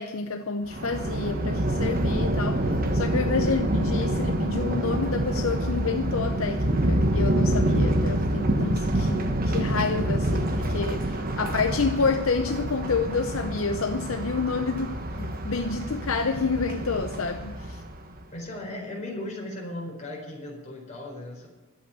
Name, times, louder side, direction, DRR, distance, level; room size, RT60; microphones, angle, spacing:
voice 1, 0.0-17.8, left 4 dB, 65° left, 0.7 m, -29 dB
Thunder, 0.7-18.1, right 1 dB, 40° right, 1.2 m, -27 dB
voice 2, 18.3-21.5, left 1 dB, 35° left, 4.5 m, -37 dB
12.0 x 8.3 x 9.9 m
head